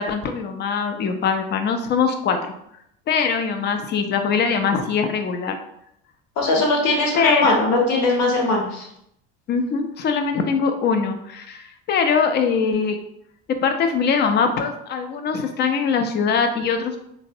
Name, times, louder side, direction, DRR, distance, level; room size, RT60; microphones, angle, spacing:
voice 1, 0.0-2.5 3.1-5.6 7.2-7.6 9.5-13.0 13.5-17.0, left 5 dB, 35° left, 6 dB, 0.4 m, -22 dB
voice 2, 6.4-8.9, left 2 dB, 70° left, -1 dB, 0.9 m, -20 dB
2.6 x 2.0 x 2.5 m, 0.76 s
supercardioid pair, 90°, 30 cm